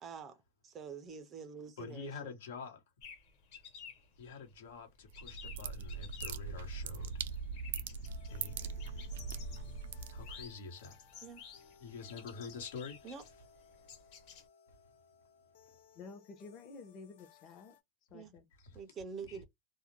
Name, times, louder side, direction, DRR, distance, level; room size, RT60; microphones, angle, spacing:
voice 1, 0.0-2.3 11.2-11.4 13.0-13.2 18.1-18.3 18.7-19.4, right 6 dB, 20° right, 0.4 m, -46 dB
voice 2, 1.8-2.8 4.2-7.2 8.3-8.8 9.1-9.3 10.1-11.0 11.8-13.1 18.6-18.8 19.3-19.4, left 5 dB, 85° left, 1.1 m, -47 dB
sound 1, 3.0-14.5, left 7 dB, 50° left, 1.2 m, -54 dB
sound 2, 5.1-10.5, right 5 dB, 85° right, 0.4 m, -41 dB
sound 3, 8.0-17.8, left 6 dB, 70° left, 0.7 m, -63 dB
voice 3, 15.9-17.8 18.1-18.4, left 4 dB, 30° left, 0.7 m, -51 dB
2.3 x 2.1 x 2.9 m
supercardioid pair, 165°, 0 cm